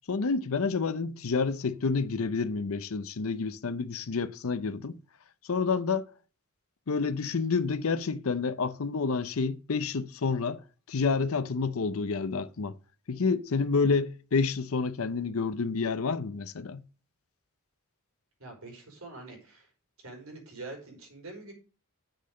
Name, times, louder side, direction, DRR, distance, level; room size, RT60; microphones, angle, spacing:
voice 1, 0.1-5.0 5.4-6.1 6.9-10.6 10.9-12.7 13.1-16.8, left 4 dB, 70° left, 0.6 m, -29 dB
voice 2, 18.4-19.7 20.0-21.5, right 2 dB, 65° right, 4.5 m, -45 dB
7.8 x 6.6 x 6.5 m
head